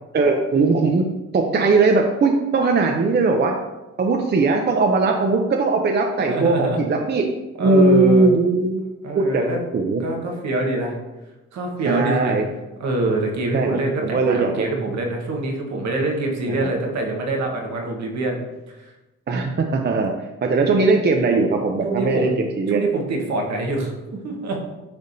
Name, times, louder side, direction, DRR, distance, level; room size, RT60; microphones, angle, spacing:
voice 1, 0.1-1.1 1.3-3.6 4.0-7.2 7.6-8.8 9.1-9.4 9.7-10.0 11.8-12.4 13.5-14.7 16.5-16.7 19.3-20.1 20.4-22.8, right 3 dB, 35° right, 3 dB, 0.6 m, -19 dB
voice 2, 6.2-6.8 7.6-8.3 9.0-9.6 9.9-11.0 11.5-12.4 12.8-18.4 18.7-18.8 20.5-20.7 21.8-22.4 22.7-24.6, right 2 dB, 65° right, 1 dB, 1.4 m, -25 dB
10.5 x 3.4 x 2.7 m, 1.1 s
cardioid pair, 90°, 30 cm